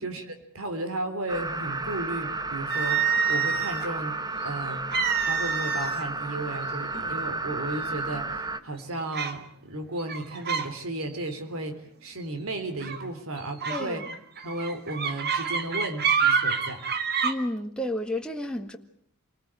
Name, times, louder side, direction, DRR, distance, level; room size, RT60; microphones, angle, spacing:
voice 1, 0.0-4.2 4.4-4.8 5.2-14.0 14.4-16.8, right 2 dB, 65° right, 3.4 m, -34 dB
sound 1, 1.3-8.6, right 3 dB, 20° right, 1.1 m, -32 dB
sound 2, 2.7-3.9 4.9-6.1 6.4-6.6 7.3-7.4 7.9-8.4 9.1-9.4 10.0-10.7 11.0-11.3 12.8-13.1 13.6-17.3, right 6 dB, 45° right, 1.9 m, -27 dB
voice 2, 13.7-14.0 17.2-18.8, left 1 dB, 5° left, 1.7 m, -31 dB
28.0 x 19.5 x 8.8 m
head